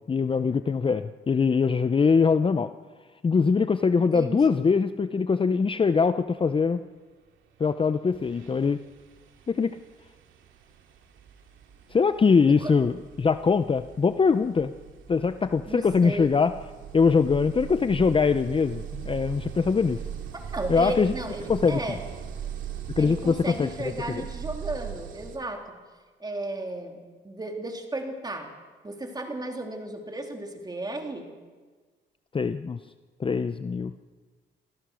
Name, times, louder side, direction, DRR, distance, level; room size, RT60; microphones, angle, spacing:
voice 1, 0.0-2.7 3.2-6.8 7.6-8.8 9.5-9.8 11.9-14.7 15.1-16.5 16.9-20.0 20.7-21.1 21.5-21.8 23.0-23.7 32.3-32.8 33.2-33.9, left 5 dB, 25° left, 11 dB, 0.6 m, -22 dB
voice 2, 4.0-4.6 12.6-12.7 15.7-16.3 20.5-22.1 23.0-25.8 26.2-28.5 28.8-31.3, right 2 dB, 20° right, 2 dB, 3.4 m, -34 dB
sound 1, 7.6-7.8 8.1-25.4, right 9 dB, 80° right, 2.4 m, -40 dB
27.5 x 15.0 x 6.4 m, 1.4 s
cardioid pair, 90°, 20 cm